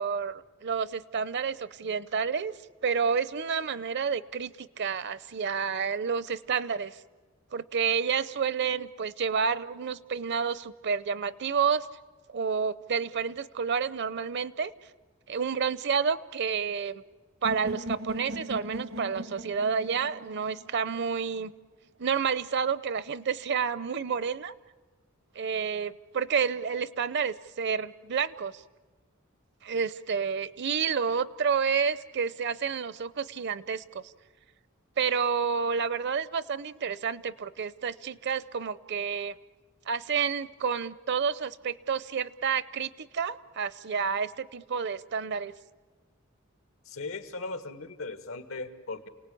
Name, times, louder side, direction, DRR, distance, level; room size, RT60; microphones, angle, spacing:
voice 1, 0.0-2.5 2.8-7.0 7.5-11.9 12.3-14.7 15.3-17.0 17.4-21.5 22.0-24.5 25.3-28.6 29.6-34.1 35.0-39.4 39.9-45.5, right 6 dB, 55° right, 17 dB, 0.7 m, -30 dB
sound 1, 17.4-21.4, right 1 dB, 80° right, 1.1 m, -39 dB
voice 2, 46.9-49.1, left 3 dB, 85° left, 10 dB, 1.7 m, -38 dB
29.0 x 18.5 x 8.5 m, 1.3 s
head